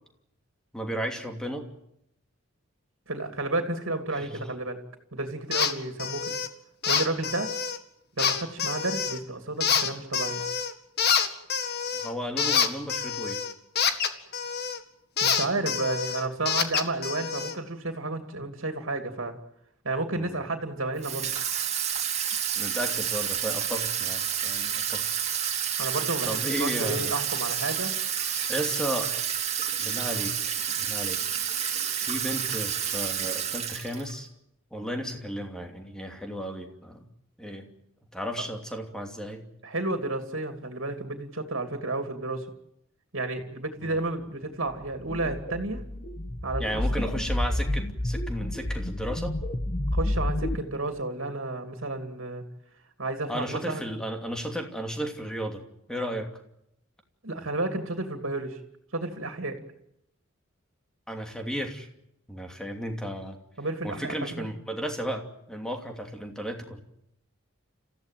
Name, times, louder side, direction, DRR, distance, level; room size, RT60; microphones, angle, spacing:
voice 1, 0.7-1.6 4.1-4.4 11.9-13.4 20.1-20.4 22.6-25.1 26.2-27.1 28.2-29.2 29.8-31.2 32.0-34.3 34.7-37.0 37.4-37.7 38.1-39.4 43.8-43.9 46.6-49.3 53.3-55.6 55.9-56.3 61.1-61.9 62.3-63.4 63.8-66.8, equal, 5° left, 3 dB, 2.8 m, -34 dB
voice 2, 3.1-4.8 5.1-6.3 6.8-7.5 8.2-10.4 15.2-19.3 19.8-21.3 25.8-27.9 39.6-42.5 43.1-45.8 46.4-46.8 49.9-52.4 53.0-53.8 57.2-58.6 58.9-59.6 63.6-64.5, right 2 dB, 70° right, 6 dB, 2.8 m, -31 dB
sound 1, 5.5-5.7 6.0-6.5 6.8-7.8 8.2-9.2 9.6-10.7 11.0-14.8 15.2-17.6, left 7 dB, 50° left, 1.9 m, -27 dB
Water tap faucet / Sink (filling or washing), 21.0-34.2, right 9 dB, 30° right, 2.7 m, -29 dB
sound 2, 44.8-50.6, left 1 dB, 35° left, 1.8 m, -29 dB
29.5 x 15.5 x 9.3 m, 0.78 s
head